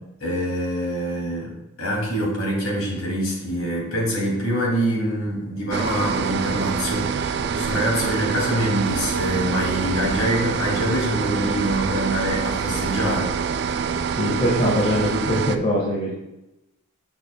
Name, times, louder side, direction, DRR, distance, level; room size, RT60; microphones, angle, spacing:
voice 1, 0.2-13.4, equal, 75° left, -3 dB, 2.6 m, -25 dB
sound 1, 5.7-15.6, right 6 dB, 50° right, 0.3 m, -26 dB
voice 2, 14.2-16.1, equal, 35° left, -4 dB, 1.4 m, -22 dB
7.7 x 7.2 x 2.2 m, 0.92 s
head